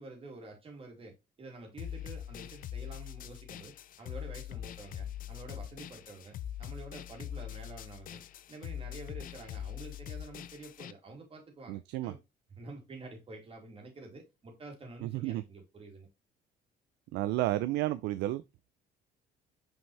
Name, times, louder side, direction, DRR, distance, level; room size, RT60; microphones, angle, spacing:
voice 1, 0.0-12.2 12.6-16.1, right 3 dB, 35° right, 2.6 m, -49 dB
sound 1, 1.8-10.9, left 11 dB, 55° left, 0.5 m, -42 dB
voice 2, 11.7-12.1 15.0-15.4 17.1-18.4, right 15 dB, 85° right, 0.4 m, -31 dB
5.6 x 5.3 x 3.2 m
cardioid pair, 110°, 17 cm